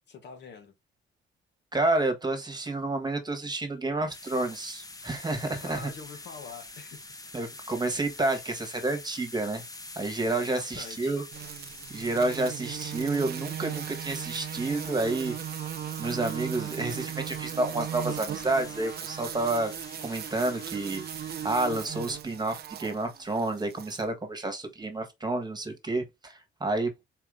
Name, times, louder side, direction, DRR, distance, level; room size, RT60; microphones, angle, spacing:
voice 1, 0.1-0.7 5.6-7.3 10.3-11.2, left 5 dB, 60° left, 1.3 m, -45 dB
voice 2, 1.7-5.9 7.3-9.6 9.9-11.2 11.9-15.3 16.0-19.7 20.0-21.0 21.4-26.9, right 2 dB, 20° right, 1.5 m, -29 dB
sound 1, 4.1-21.9, left 2 dB, 20° left, 0.9 m, -46 dB
sound 2, 11.3-24.0, right 11 dB, 55° right, 0.5 m, -37 dB
4.3 x 2.9 x 3.8 m
cardioid pair, 90°, 20 cm